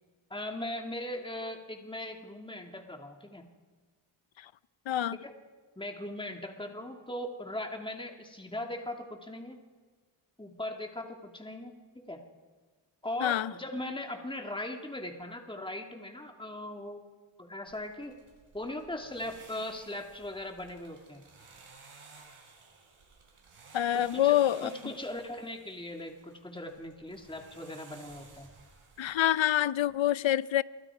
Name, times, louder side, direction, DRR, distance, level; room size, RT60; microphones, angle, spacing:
voice 1, 0.3-3.4 5.2-5.3 5.8-9.6 10.4-12.2 13.0-17.1 17.4-18.1 18.5-21.2 23.9-28.5, left 1 dB, 10° left, 3 dB, 2.5 m, -39 dB
voice 2, 4.9-5.2 13.2-13.5 23.7-24.7 29.0-30.6, left 12 dB, 65° left, 18 dB, 0.7 m, -26 dB
sound 1, 17.7-29.4, right 4 dB, 85° right, 5.1 m, -56 dB
27.5 x 24.0 x 4.9 m, 1.4 s
wide cardioid pair, 70°, 49 cm